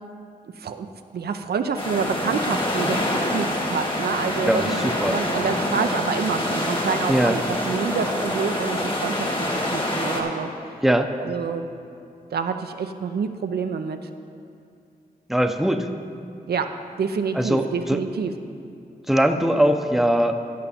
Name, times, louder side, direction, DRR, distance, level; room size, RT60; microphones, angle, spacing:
voice 1, 0.6-0.9 1.1-9.3 9.7-10.5 11.2-11.7 12.3-14.0 16.5-16.7 17.0-18.3, right 6 dB, 85° right, 7 dB, 0.5 m, -27 dB
sound 1, 1.8-10.2, left 1 dB, 30° left, 1.6 m, -26 dB
voice 2, 4.4-5.2 7.1-7.4 10.8-11.1 15.3-15.9 17.3-18.0 19.1-20.3, equal, ahead, 6 dB, 0.7 m, -21 dB
15.5 x 5.7 x 4.3 m, 2.5 s
cardioid pair, 50°, 16 cm